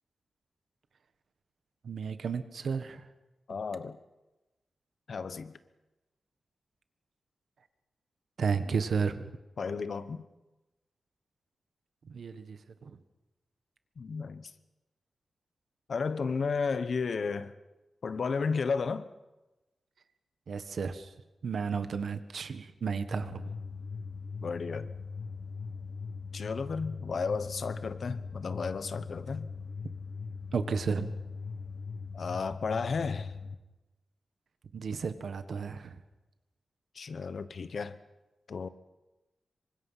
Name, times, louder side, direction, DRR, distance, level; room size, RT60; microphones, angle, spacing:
voice 1, 1.8-3.1 8.4-9.3 12.1-13.0 20.5-21.1 21.4-23.5 30.5-31.1 34.7-36.0, right 5 dB, 70° right, 10 dB, 1.5 m, -33 dB
voice 2, 3.5-4.0 5.1-5.5 8.7-8.8 9.6-10.2 14.0-14.5 15.9-17.5 18.0-19.1 24.4-24.9 26.3-29.5 32.1-33.3 36.9-38.0 38.5-38.7, left 5 dB, 55° left, 13 dB, 1.0 m, -33 dB
sound 1, 23.1-33.6, left 4 dB, 80° left, 1.6 m, -40 dB
27.0 x 24.5 x 5.8 m, 1.1 s
wide cardioid pair, 140°, 0 cm